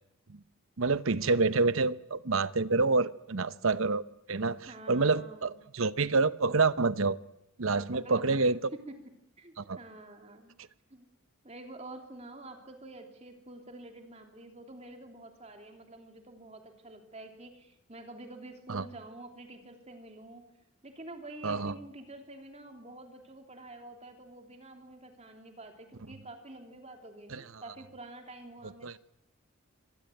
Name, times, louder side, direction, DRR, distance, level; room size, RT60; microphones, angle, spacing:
voice 1, 0.8-4.0 4.3-7.2 7.6-8.7 9.6-9.8 18.7-18.8 21.4-21.7 27.3-27.4 28.8-28.9, right 3 dB, 70° right, 15 dB, 0.9 m, -27 dB
voice 2, 4.7-5.5 7.7-8.4 8.7-8.9 9.4-10.6 10.9-11.0 11.4-20.4 20.8-29.0, right 2 dB, 30° right, 4 dB, 3.1 m, -48 dB
25.0 x 19.5 x 9.2 m, 0.79 s
head